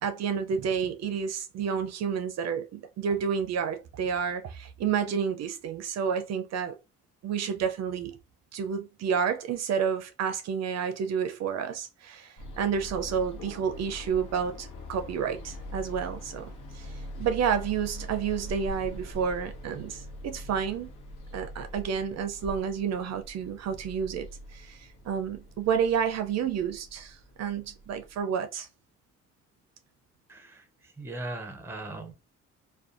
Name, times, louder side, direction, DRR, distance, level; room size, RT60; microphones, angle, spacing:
voice 1, 0.0-6.8 7.2-8.2 8.5-20.9 21.3-28.7, right 7 dB, 60° right, 0.4 m, -30 dB
sound 1, 12.4-28.2, equal, 85° left, 0.8 m, -43 dB
voice 2, 30.3-32.1, right 2 dB, 10° right, 0.6 m, -39 dB
2.5 x 2.2 x 2.4 m
cardioid pair, 90°, 30 cm